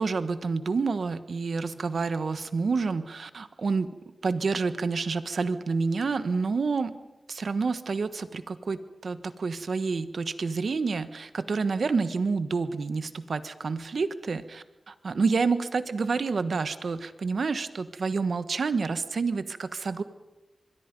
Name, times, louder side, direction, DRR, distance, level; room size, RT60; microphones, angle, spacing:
voice 1, 0.0-3.9 4.2-6.9 7.3-20.0, right 4 dB, 70° right, 12 dB, 1.2 m, -28 dB
26.0 x 22.0 x 5.3 m, 1.1 s
wide cardioid pair, 65°, 0 cm